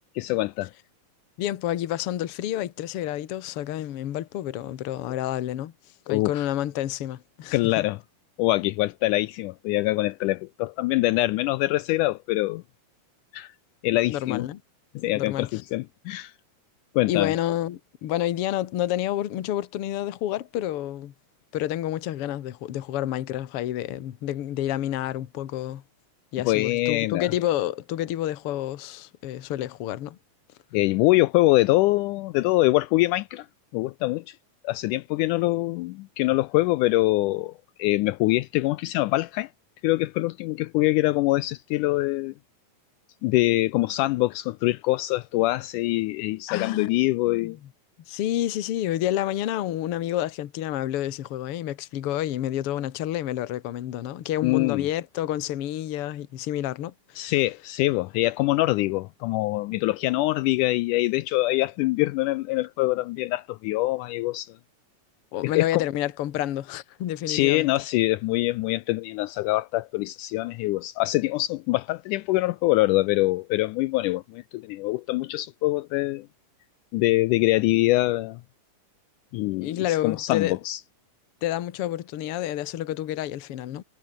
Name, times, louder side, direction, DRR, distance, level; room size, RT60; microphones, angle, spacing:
voice 1, 0.2-0.7 6.1-6.4 7.5-8.0 8.4-12.6 13.3-13.5 13.8-14.5 15.0-16.3 17.0-17.3 26.5-27.3 30.7-33.5 33.7-34.4 34.6-37.5 37.8-39.5 39.8-42.3 43.2-47.6 54.4-54.9 57.2-64.5 65.4-65.8 67.3-76.3 76.9-78.4 79.3-80.8, left 19 dB, 80° left, 2.0 m, -24 dB
voice 2, 1.4-5.7 6.1-7.9 14.1-14.6 15.2-15.6 17.1-21.1 21.5-25.8 26.3-30.2 46.5-47.0 47.3-47.6 48.1-57.3 65.3-67.7 79.6-80.6 81.4-83.8, left 12 dB, 55° left, 1.7 m, -29 dB
omnidirectional pair, 3.8 m